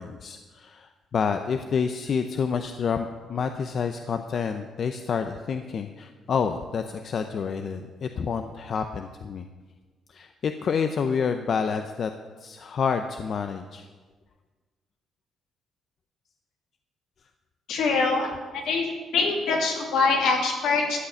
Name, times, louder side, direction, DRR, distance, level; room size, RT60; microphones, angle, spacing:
voice 1, 0.0-9.5 10.1-12.1 12.4-13.9, left 6 dB, 55° left, 7 dB, 0.7 m, -28 dB
voice 2, 17.7-18.3 18.7-18.8 19.1-21.0, left 4 dB, 80° left, 0 dB, 2.7 m, -23 dB
13.0 x 8.0 x 7.1 m, 1.4 s
cardioid pair, 90°, 0 cm